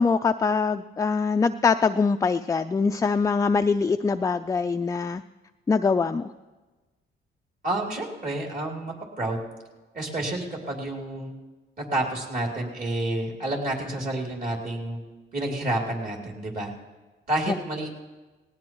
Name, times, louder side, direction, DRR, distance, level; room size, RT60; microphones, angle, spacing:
voice 1, 0.0-5.2 5.7-6.3, left 5 dB, 15° left, 8 dB, 0.3 m, -23 dB
voice 2, 7.6-9.4 9.9-11.3 11.8-15.0 15.3-16.7 17.3-18.0, right 1 dB, 45° right, -1 dB, 3.1 m, -29 dB
18.0 x 18.0 x 3.1 m, 1.2 s
cardioid pair, 90°, 20 cm